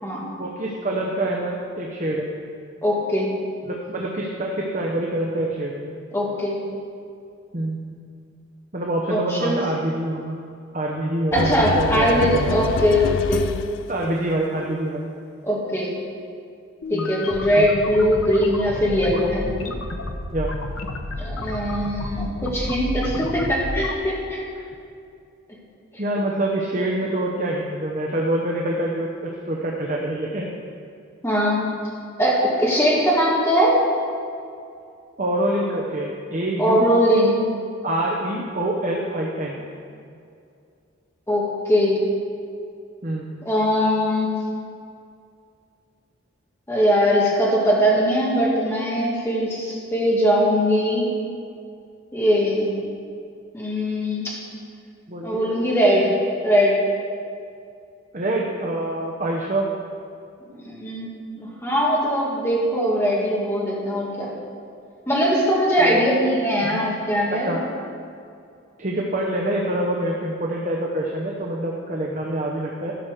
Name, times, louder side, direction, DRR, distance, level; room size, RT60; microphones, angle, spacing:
voice 1, 0.4-2.3 3.6-5.9 7.5-7.8 8.7-10.4 10.7-12.5 13.9-15.1 16.9-17.1 17.5-17.7 20.3-20.5 26.0-30.5 35.2-36.9 37.8-39.6 43.0-43.3 55.1-55.4 58.1-59.7 65.8-66.2 66.7-66.8 67.3-67.6 68.8-72.9, right 1 dB, 35° right, -2 dB, 0.9 m, -26 dB
voice 2, 2.8-3.3 6.1-6.6 9.1-9.6 11.3-13.5 15.4-15.9 16.9-19.5 21.2-24.4 31.2-31.6 32.2-33.8 36.6-37.4 41.3-42.0 43.5-44.3 46.7-51.1 52.1-52.7 53.5-54.4 55.2-56.1 56.4-56.7 60.6-61.1 61.3-64.3 65.1-67.5, equal, 10° left, -5 dB, 2.1 m, -21 dB
sound 1, 11.3-14.0, left 6 dB, 65° left, 0.3 m, -27 dB
sound 2, 16.8-23.9, left 2 dB, 85° left, 0.9 m, -31 dB
12.0 x 6.1 x 6.6 m, 2.4 s
head